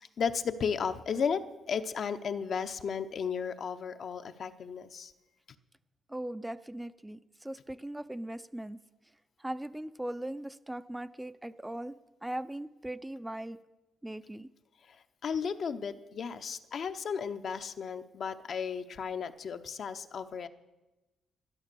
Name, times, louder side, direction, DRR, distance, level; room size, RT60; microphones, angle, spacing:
voice 1, 0.2-1.4 1.7-5.1 14.9-15.0 15.2-20.5, left 6 dB, 55° left, 9 dB, 0.8 m, -34 dB
voice 2, 6.1-8.8 9.4-12.0 12.2-13.6 14.0-14.5, right 1 dB, 10° right, 12 dB, 0.5 m, -39 dB
11.5 x 11.5 x 6.9 m, 1.1 s
cardioid pair, 90°, 0 cm